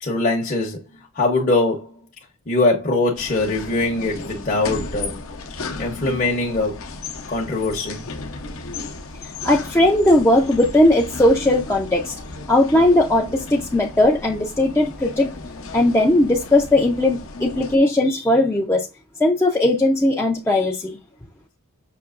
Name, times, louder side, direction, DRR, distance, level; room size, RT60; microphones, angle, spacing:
voice 1, 0.0-0.8 1.1-1.9 2.5-5.1 5.8-6.8 7.3-8.1, left 2 dB, 35° left, 0.8 m, -22 dB
sound 1, 3.1-17.8, left 3 dB, 65° left, 0.7 m, -34 dB
voice 2, 9.2-12.1 12.5-15.3 15.7-18.9 19.2-21.0, left 1 dB, 10° left, 0.4 m, -18 dB
5.9 x 2.8 x 2.4 m
head